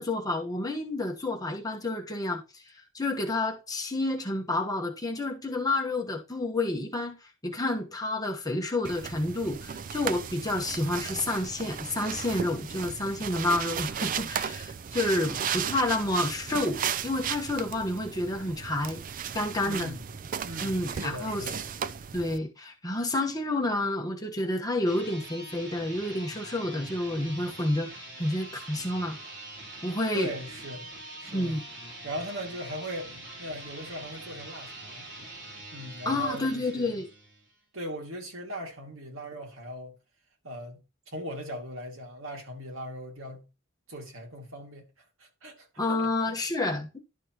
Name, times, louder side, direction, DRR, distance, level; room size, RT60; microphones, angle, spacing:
voice 1, 0.0-2.6 2.9-7.2 7.4-19.0 19.3-19.9 20.6-21.4 22.1-29.2 29.8-30.3 31.3-31.6 36.0-37.1 45.8-47.0, left 2 dB, 20° left, 1.3 m, -29 dB
sound 1, 8.8-22.4, right 7 dB, 40° right, 0.4 m, -35 dB
voice 2, 19.6-20.0 20.4-21.7 30.1-30.9 31.2-31.6 32.0-35.1 35.7-37.0 37.7-40.0 40.4-43.5 43.9-44.9 45.2-45.7 46.0-46.1 46.6-46.8, equal, 75° right, 2.3 m, -39 dB
sound 2, 24.8-37.5, right 1 dB, 55° right, 3.8 m, -44 dB
11.5 x 5.8 x 3.0 m
head